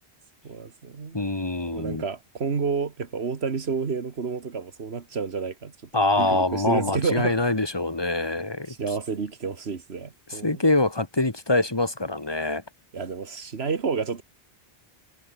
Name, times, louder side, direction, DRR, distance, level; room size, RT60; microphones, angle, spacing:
voice 1, 0.4-1.2 1.7-7.4 8.7-10.6 12.9-14.2, right 5 dB, 70° right, 1.8 m, -30 dB
voice 2, 1.1-2.0 5.9-8.7 10.3-12.6, left 2 dB, 25° left, 1.9 m, -24 dB
omnidirectional pair, 1.1 m